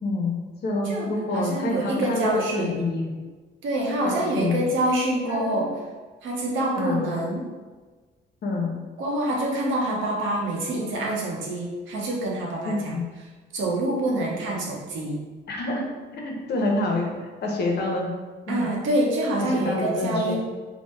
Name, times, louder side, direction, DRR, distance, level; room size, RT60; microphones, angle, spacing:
voice 1, 0.0-3.2 4.0-4.6 5.3-5.6 6.8-7.1 8.4-8.8 12.7-13.0 15.5-15.8 16.1-17.1 17.4-18.2 18.5-18.7 19.4-20.4, left 2 dB, 55° left, 0 dB, 0.7 m, -27 dB
voice 2, 0.8-2.8 3.6-5.7 6.2-7.5 9.0-13.0 13.5-15.2 18.5-20.4, right 1 dB, 80° right, -2 dB, 0.7 m, -26 dB
3.0 x 2.0 x 3.2 m, 1.3 s
cardioid pair, 90°, 20 cm